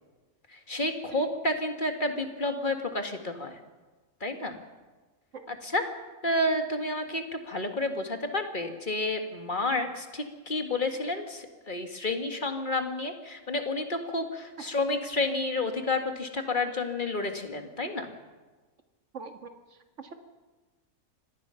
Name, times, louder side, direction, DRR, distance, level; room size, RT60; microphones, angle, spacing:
voice 1, 0.5-3.6 4.2-4.6 5.5-5.9 6.2-18.1, left 2 dB, 35° left, 5 dB, 2.0 m, -30 dB
voice 2, 1.1-1.3 5.3-5.5 19.1-19.4 20.0-20.1, right 5 dB, 60° right, 6 dB, 2.0 m, -41 dB
25.5 x 18.5 x 5.7 m, 1.3 s
omnidirectional pair, 1.4 m